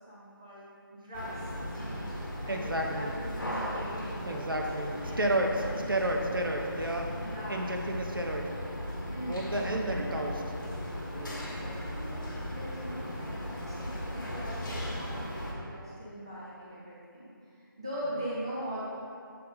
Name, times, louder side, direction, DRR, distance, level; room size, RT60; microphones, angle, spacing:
voice 1, 0.1-1.5 1.7-2.1 2.4-4.4 5.0-5.8 7.1-8.1 9.1-9.6 9.8-10.6 11.1-18.8, equal, 15° right, -7 dB, 0.5 m, -42 dB
sound 1, 1.1-15.5, left 1 dB, 60° left, 1.5 m, -37 dB
voice 2, 2.5-3.1 4.3-7.2 7.5-8.5 9.2-10.4 11.1-11.4, right 1 dB, 70° right, 1 dB, 0.8 m, -31 dB
7.6 x 3.9 x 4.0 m, 2.4 s
figure-of-eight pair, 160°, 12 cm